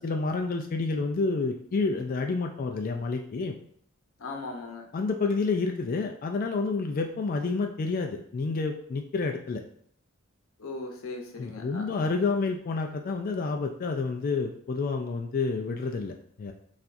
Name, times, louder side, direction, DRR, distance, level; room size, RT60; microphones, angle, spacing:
voice 1, 0.0-3.6 4.9-9.6 11.4-16.5, left 4 dB, 45° left, 3 dB, 0.3 m, -29 dB
voice 2, 4.2-4.9 10.6-12.1, left 3 dB, 90° left, 2 dB, 0.8 m, -38 dB
5.6 x 2.5 x 2.6 m, 0.64 s
head